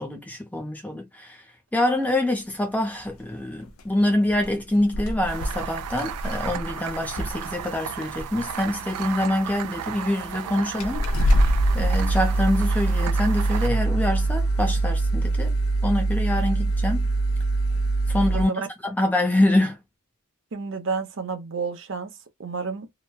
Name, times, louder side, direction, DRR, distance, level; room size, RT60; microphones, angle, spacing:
voice 1, 0.0-1.4 1.7-11.4 11.7-15.5 15.8-17.1 18.1-18.5 18.8-19.8, left 1 dB, 5° left, 0.5 m, -25 dB
sound 1, 3.6-3.8 4.3-4.4 4.8-7.5 8.0-8.4 9.3-9.4 10.3-10.4 10.8-18.4, right 2 dB, 65° left, 0.6 m, -23 dB
sound 2, 5.3-14.6, right 9 dB, 90° right, 0.3 m, -35 dB
voice 2, 18.3-18.7 20.5-22.1 22.4-22.9, right 5 dB, 55° right, 0.7 m, -30 dB
2.9 x 2.1 x 2.2 m
head